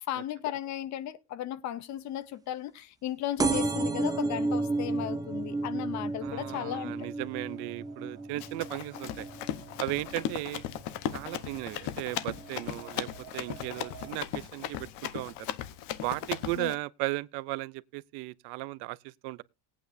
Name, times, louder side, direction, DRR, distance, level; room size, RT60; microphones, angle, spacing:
voice 1, 0.1-7.1 16.6-16.7, left 12 dB, 40° left, 0.7 m, -36 dB
sound 1, 3.4-10.6 11.1-11.6 12.4-12.5 12.7-12.8 13.1-13.2, right 2 dB, 10° right, 0.5 m, -32 dB
sound 2, 4.2-14.2, right 10 dB, 40° right, 2.9 m, -55 dB
voice 2, 6.2-9.3 9.8-10.6 11.1-13.1 13.3-15.5 16.0-19.4, right 20 dB, 65° right, 0.6 m, -36 dB
Run, 8.4-16.7, left 11 dB, 70° left, 1.1 m, -37 dB
20.0 x 8.8 x 2.6 m
cardioid pair, 175°, 42 cm